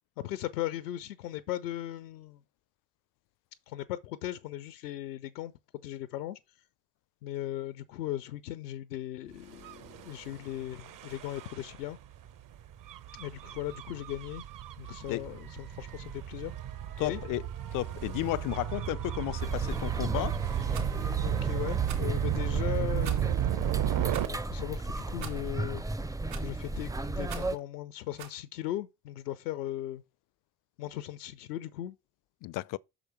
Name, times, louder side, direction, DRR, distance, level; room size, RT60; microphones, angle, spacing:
voice 1, 0.2-2.4 3.7-5.5 5.8-6.4 7.2-12.0 13.1-14.4 14.8-16.5 17.0-17.2 21.2-23.5 23.8-25.8 26.4-30.0 30.8-32.0, left 13 dB, 85° left, 0.7 m, -38 dB
Gull seagull / Waves surf / Siren, 9.5-24.3, right 10 dB, 45° right, 0.8 m, -34 dB
voice 2, 17.0-17.4 17.7-20.4 32.4-32.8, left 18 dB, 45° left, 0.4 m, -33 dB
sound 1, 19.4-27.6, right 2 dB, 10° right, 0.5 m, -35 dB
Rattle, 20.7-20.9 21.8-22.1 23.0-23.4 24.1-24.3 25.2-25.5 26.3-26.6 27.3-27.6 28.2-28.4, right 10 dB, 65° right, 3.0 m, -44 dB
6.4 x 5.0 x 4.5 m
hypercardioid pair, 55°, 47 cm